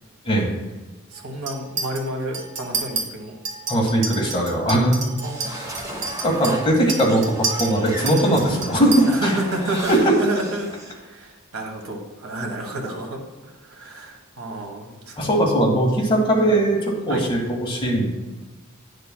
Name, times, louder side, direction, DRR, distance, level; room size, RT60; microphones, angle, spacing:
voice 1, 1.1-3.4 5.2-5.7 9.1-10.7 11.0-15.2 17.1-17.3, right 1 dB, 80° right, 1 dB, 1.4 m, -30 dB
Chink clink, 1.5-2.0 2.3-3.0 3.4-9.2, right 4 dB, 55° right, 1.3 m, -29 dB
voice 2, 3.7-5.0 5.5-5.7 6.2-9.3 9.9-10.1 15.2-18.1, right 1 dB, 25° left, -1 dB, 1.6 m, -20 dB
sound 1, 5.2-11.0, right 1 dB, 15° right, 1.0 m, -36 dB
10.0 x 6.6 x 2.2 m, 1.2 s
head